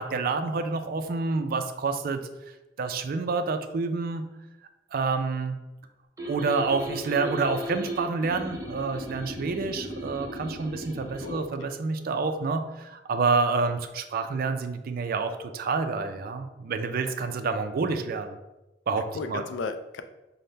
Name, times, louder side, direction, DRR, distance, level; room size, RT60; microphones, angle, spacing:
voice 1, 0.0-2.2 2.8-4.2 4.9-5.6 6.3-18.3 18.9-19.4, right 4 dB, 55° right, 8 dB, 0.4 m, -28 dB
sound 1, 6.2-11.4, equal, 20° right, 0.7 m, -36 dB
voice 2, 11.2-11.7 19.0-20.0, left 4 dB, 85° left, 9 dB, 0.4 m, -35 dB
5.4 x 2.1 x 3.2 m, 1.0 s
head